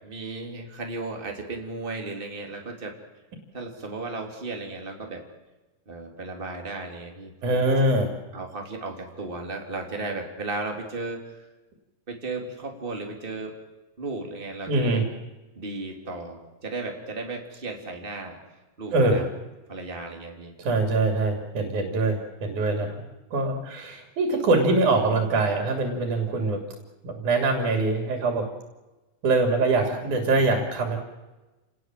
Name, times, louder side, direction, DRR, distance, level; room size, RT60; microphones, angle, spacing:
voice 1, 0.0-2.9 3.5-5.2 5.9-7.9 8.3-11.4 12.1-13.5 14.0-15.0 15.5-18.4 18.8-19.3 19.7-20.5, right 3 dB, 15° right, 2 dB, 3.2 m, -35 dB
voice 2, 7.4-8.1 14.7-15.0 18.9-19.3 20.6-23.0 23.3-26.6 27.0-28.5 29.2-31.0, right 2 dB, 90° right, 4 dB, 4.2 m, -23 dB
29.0 x 18.5 x 7.7 m, 1.1 s
omnidirectional pair, 3.4 m